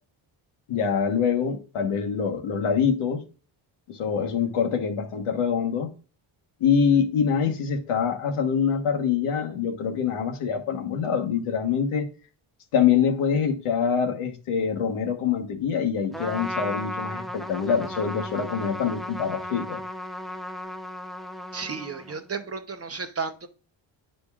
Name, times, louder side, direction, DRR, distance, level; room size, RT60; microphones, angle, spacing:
voice 1, 0.7-3.2 3.9-5.9 6.6-12.1 12.7-19.8, left 7 dB, 80° left, 1.3 m, -25 dB
Trumpet, 16.1-22.3, left 1 dB, ahead, 0.3 m, -35 dB
voice 2, 21.5-23.5, right 5 dB, 30° right, 0.7 m, -33 dB
9.5 x 5.2 x 2.4 m
cardioid pair, 110°, 50 cm